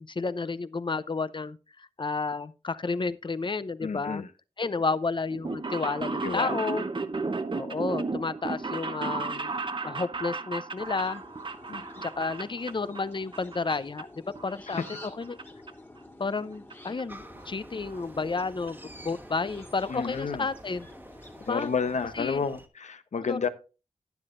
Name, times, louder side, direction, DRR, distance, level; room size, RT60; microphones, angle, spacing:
voice 1, 0.0-4.2 4.6-6.9 7.5-9.5 9.8-11.2 12.0-14.1 14.4-15.4 16.2-18.8 19.0-20.9 21.5-21.7 22.2-22.4 23.2-23.5, left 4 dB, 40° left, 0.6 m, -31 dB
voice 2, 3.8-4.3 6.2-6.6 11.7-12.1 14.7-14.8 19.9-20.5 21.5-23.5, left 5 dB, 70° left, 0.9 m, -31 dB
sound 1, 5.3-13.1 13.3-14.0 14.4-15.4 15.7-15.8 16.7-16.8 17.0-17.1 17.4-17.5 17.7-18.0 18.4-18.5 18.7-18.8, right 3 dB, 40° right, 0.9 m, -34 dB
sound 2, 10.8-21.9, left 1 dB, 20° left, 1.8 m, -49 dB
sound 3, 17.1-22.7, right 1 dB, 15° right, 1.4 m, -49 dB
12.0 x 9.8 x 2.5 m
cardioid pair, 60°, 12 cm